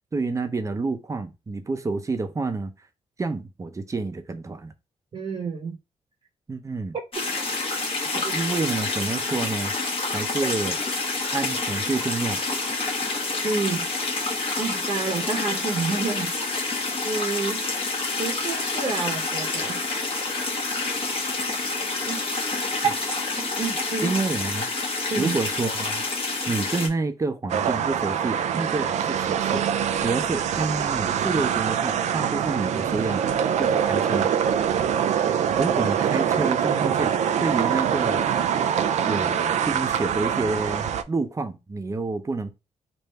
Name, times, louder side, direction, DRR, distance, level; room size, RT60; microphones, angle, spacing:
voice 1, 0.1-2.7 3.2-4.7 6.5-6.9 8.3-9.7 10.1-10.8 11.3-12.4 24.0-24.7 25.2-26.0 26.5-29.6 30.0-33.3 33.6-34.3 35.6-38.2 39.0-42.5, right 3 dB, 25° right, 0.6 m, -28 dB
voice 2, 5.1-5.8 8.1-8.4 13.4-13.9 14.6-16.5 17.0-17.6 18.2-19.8 22.0-22.9 23.4-24.2 25.1-25.3, right 4 dB, 45° right, 0.9 m, -29 dB
sound 1, 7.1-26.9, left 3 dB, 50° left, 1.3 m, -28 dB
sound 2, 27.5-41.0, right 8 dB, 75° right, 0.4 m, -24 dB
3.3 x 2.6 x 4.3 m
cardioid pair, 100°, 12 cm